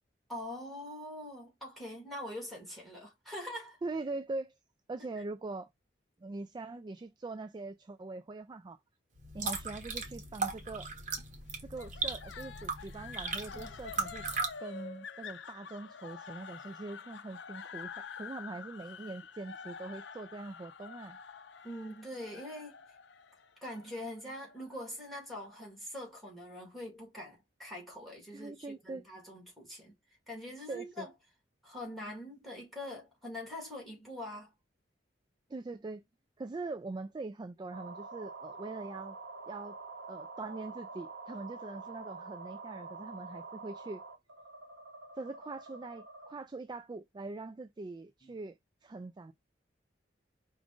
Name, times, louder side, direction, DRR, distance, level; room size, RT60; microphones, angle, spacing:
voice 1, 0.3-3.8 13.5-13.8 21.6-22.8 23.6-29.9 30.3-31.1 31.6-34.5 48.2-48.3, left 1 dB, ahead, 1.9 m, -43 dB
voice 2, 3.8-4.5 4.9-5.7 6.2-8.8 9.3-10.9 11.6-14.3 14.6-21.2 28.3-29.0 30.6-31.1 35.5-36.0 36.4-39.2 39.5-39.8 40.1-44.0 45.2-49.3, right 3 dB, 25° right, 0.3 m, -42 dB
sound 1, 9.2-14.5, right 4 dB, 45° right, 1.1 m, -37 dB
sound 2, 11.8-24.9, left 6 dB, 70° left, 0.5 m, -48 dB
sound 3, 37.7-46.3, right 4 dB, 70° right, 1.1 m, -47 dB
4.9 x 2.6 x 3.6 m
head